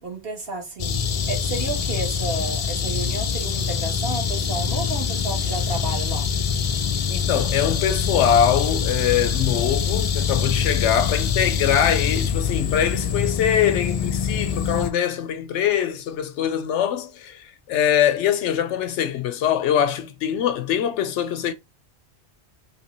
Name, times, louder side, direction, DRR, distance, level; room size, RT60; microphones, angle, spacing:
voice 1, 0.0-6.3, right 2 dB, 55° right, 1.4 m, -32 dB
sound 1, 0.8-14.9, left 6 dB, 70° left, 0.3 m, -24 dB
voice 2, 7.1-21.5, left 9 dB, 90° left, 0.9 m, -23 dB
3.2 x 3.1 x 3.0 m
omnidirectional pair, 1.2 m